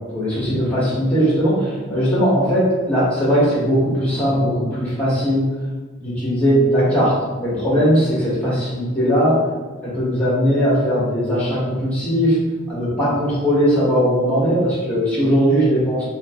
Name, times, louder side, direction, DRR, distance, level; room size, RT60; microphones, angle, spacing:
voice 1, 0.1-5.5 6.0-9.5 9.8-12.4 12.7-16.0, equal, 5° left, -10 dB, 1.1 m, -19 dB
2.5 x 2.4 x 3.4 m, 1.3 s
head